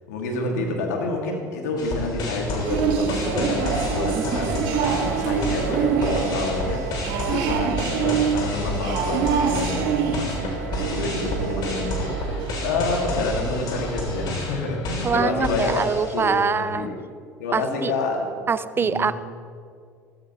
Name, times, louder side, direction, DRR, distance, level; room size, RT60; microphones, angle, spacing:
voice 1, 0.1-15.8 16.1-17.0 17.4-18.5 18.8-19.1, left 3 dB, 80° left, 1 dB, 2.2 m, -28 dB
sound 1, 1.8-16.5, left 1 dB, 55° left, 3.2 m, -31 dB
sound 2, 2.5-14.3, right 7 dB, 65° right, 1.4 m, -26 dB
Wind instrument woodwind instrument, 3.5-12.4, right 13 dB, 85° right, 0.4 m, -39 dB
voice 2, 15.0-16.9 17.5-17.9 18.5-19.1, right 5 dB, 25° right, 15 dB, 0.5 m, -24 dB
15.5 x 14.0 x 3.1 m, 2.2 s
hypercardioid pair, 75°, 9 cm